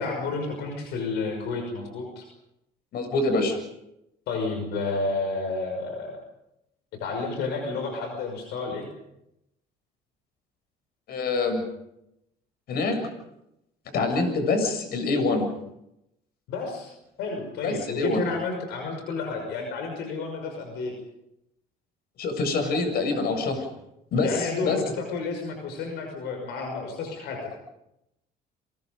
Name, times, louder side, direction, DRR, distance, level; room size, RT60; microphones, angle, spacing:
voice 1, 0.0-2.2 4.3-6.2 7.0-8.9 16.5-16.9 17.2-20.9 24.2-27.4, left 3 dB, 85° left, 3 dB, 6.0 m, -31 dB
voice 2, 2.9-3.6 11.1-11.6 12.7-13.0 13.9-15.5 17.6-18.2 22.2-23.7 24.1-24.8, left 3 dB, 65° left, 6 dB, 7.3 m, -25 dB
29.5 x 24.0 x 5.4 m, 0.86 s
cardioid pair, 110°, 17 cm